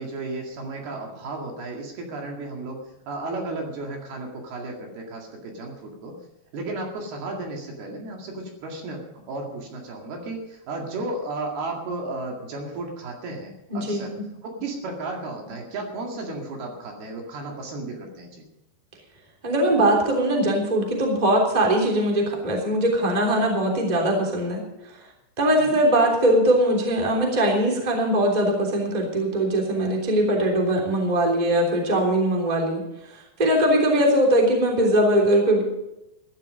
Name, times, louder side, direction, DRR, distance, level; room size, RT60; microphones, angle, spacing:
voice 1, 0.0-2.8 3.1-6.2 6.5-14.1 14.4-18.4 25.6-25.8, right 2 dB, 65° right, 0 dB, 3.9 m, -34 dB
voice 2, 13.7-14.1 19.4-24.6 25.4-32.8 33.4-35.6, right 1 dB, 10° right, 0 dB, 2.5 m, -21 dB
15.0 x 12.0 x 5.3 m, 0.89 s
omnidirectional pair, 5.1 m